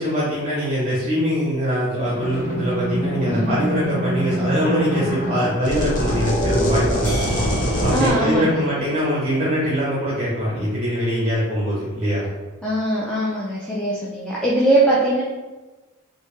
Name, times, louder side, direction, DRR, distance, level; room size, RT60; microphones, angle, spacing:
voice 1, 0.0-7.1 7.8-12.2, equal, 35° right, -7 dB, 0.8 m, -22 dB
sound 1, 2.1-8.1, equal, 40° left, 0.7 m, -24 dB
voice 2, 3.3-3.6 7.9-8.6 12.6-15.2, right 1 dB, 5° left, -7 dB, 0.4 m, -21 dB
sound 2, 7.0-11.4, equal, 70° left, 1.3 m, -38 dB
3.3 x 2.7 x 3.2 m, 1.2 s
head